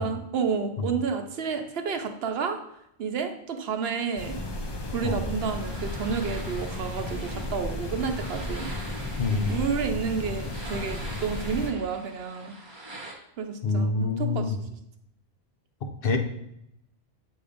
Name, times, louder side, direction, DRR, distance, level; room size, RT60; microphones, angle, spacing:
voice 1, 0.0-2.6 3.0-4.4 4.9-8.7 9.3-12.6 13.4-14.6, right 5 dB, 70° right, 6 dB, 0.9 m, -30 dB
sound 1, 4.2-11.7, left 1 dB, 35° left, 0.5 m, -34 dB
sound 2, 5.4-13.1, right 2 dB, 25° right, 1.0 m, -44 dB
voice 2, 9.2-9.6 13.6-14.6 15.8-16.2, left 3 dB, 65° left, 5 dB, 0.9 m, -26 dB
7.9 x 2.8 x 5.0 m, 0.78 s
omnidirectional pair, 1.1 m